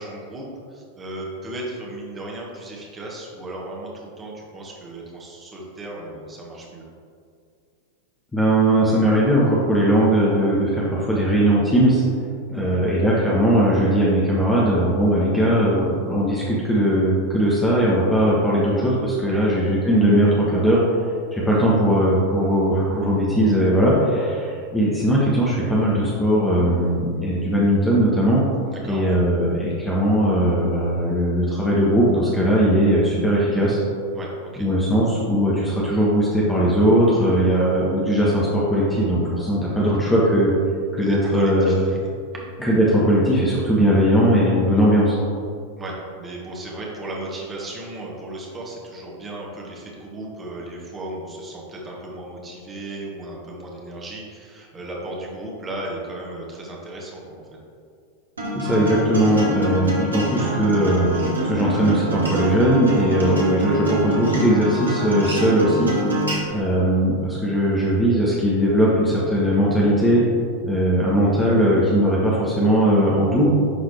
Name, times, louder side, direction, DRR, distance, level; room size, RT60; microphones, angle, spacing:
voice 1, 0.0-6.8 12.5-12.8 19.2-19.5 28.7-29.2 34.1-34.7 37.4-37.6 39.7-39.9 41.0-42.0 42.3-42.5 44.7-44.8 45.8-57.6 63.0-63.3 66.3-66.6, right 1 dB, 20° right, -3 dB, 1.6 m, -35 dB
voice 2, 8.3-12.0 12.5-20.8 21.3-28.4 28.8-33.8 34.6-40.5 40.9-41.7 42.6-45.2 58.5-61.1 61.4-65.9 66.5-70.2 70.6-73.5, equal, 10° left, -6 dB, 1.2 m, -19 dB
Acoustic guitar, 58.4-66.4, right 1 dB, 75° right, 1.3 m, -25 dB
11.0 x 4.0 x 3.3 m, 2.3 s
figure-of-eight pair, 90°, 0 cm